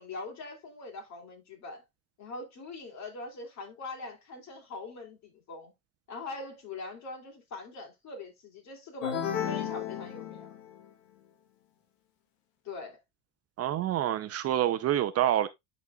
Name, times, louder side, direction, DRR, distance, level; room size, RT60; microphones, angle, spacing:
voice 1, 0.0-1.8 2.2-5.7 6.1-10.5 12.6-13.0, left 3 dB, 45° left, 3.3 m, -42 dB
sound 1, 9.0-10.9, left 9 dB, 85° left, 1.3 m, -33 dB
voice 2, 13.6-15.5, right 11 dB, 40° right, 0.7 m, -27 dB
11.5 x 4.2 x 2.4 m
supercardioid pair, 105°, 37 cm